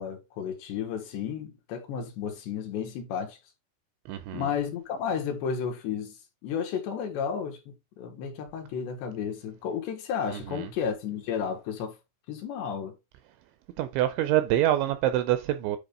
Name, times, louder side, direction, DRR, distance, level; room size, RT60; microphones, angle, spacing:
voice 1, 0.0-3.4 4.3-6.2 6.4-12.0 12.3-13.0, left 7 dB, 70° left, 3.1 m, -32 dB
voice 2, 4.1-4.5 10.3-10.7 13.8-15.8, right 13 dB, 80° right, 2.7 m, -26 dB
10.0 x 4.1 x 3.9 m
omnidirectional pair, 5.8 m